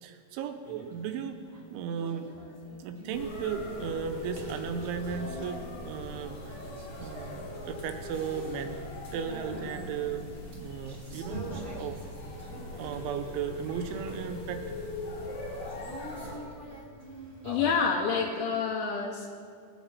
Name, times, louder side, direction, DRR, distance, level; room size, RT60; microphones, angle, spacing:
voice 1, 0.0-1.4 1.7-2.3 2.8-6.6 7.0-8.8 9.1-10.3 10.5-12.0 12.5-14.6, right 7 dB, 90° right, 6 dB, 3.2 m, -36 dB
sound 1, 0.6-1.1 1.4-13.4 13.7-14.7 15.6-17.9, right 1 dB, 30° right, 2.5 m, -46 dB
sound 2, 3.1-16.4, left 1 dB, 55° left, 1.8 m, -40 dB
voice 2, 17.4-19.3, left 5 dB, 80° left, 0 dB, 3.1 m, -28 dB
20.0 x 7.4 x 5.5 m, 2.2 s
omnidirectional pair, 5.4 m